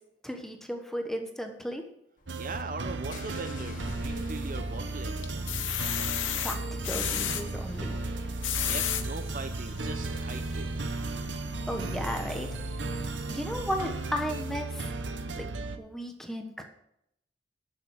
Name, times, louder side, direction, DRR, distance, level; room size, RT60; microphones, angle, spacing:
voice 1, 0.2-1.8 5.7-6.1 6.4-6.6 6.8-8.0 11.7-12.5 12.9-13.0 13.3-14.9 15.3-15.4 15.8-16.6, equal, ahead, 4 dB, 1.1 m, -35 dB
sound 1, 2.2-14.7, left 1 dB, 45° left, 1.3 m, -47 dB
voice 2, 2.3-5.6 8.7-11.0, right 3 dB, 45° right, 8 dB, 0.8 m, -40 dB
sound 2, 2.3-15.8, right 2 dB, 70° right, 1.0 m, -35 dB
sound 3, 4.2-4.8 5.2-7.4 8.2-9.0 9.7-9.8 10.1-10.2, left 10 dB, 85° left, 1.0 m, -31 dB
11.5 x 7.1 x 6.3 m, 0.78 s
head